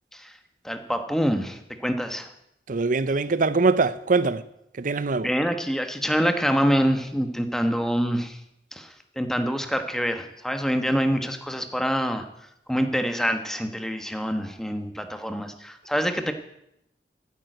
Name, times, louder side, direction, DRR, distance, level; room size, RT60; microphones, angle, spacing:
voice 1, 0.6-2.3 5.2-8.4 8.7-12.2 12.7-16.3, equal, 5° left, 1.2 m, -26 dB
voice 2, 2.7-4.4 4.8-5.3, right 3 dB, 50° right, 0.7 m, -22 dB
14.5 x 9.3 x 7.9 m
head